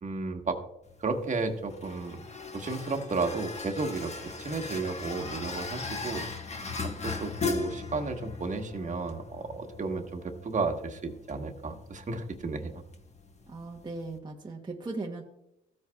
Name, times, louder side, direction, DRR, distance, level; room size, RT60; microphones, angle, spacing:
voice 1, 0.0-0.6 1.0-2.2 2.5-4.1 4.4-6.3 7.0-12.8, right 3 dB, 40° right, 5 dB, 1.3 m, -33 dB
sound 1, 0.8-14.2, left 4 dB, 35° left, 1.2 m, -39 dB
voice 2, 13.5-15.2, right 3 dB, 20° right, 0 dB, 1.0 m, -38 dB
15.0 x 8.0 x 2.3 m, 0.83 s
cardioid pair, 90°, 20 cm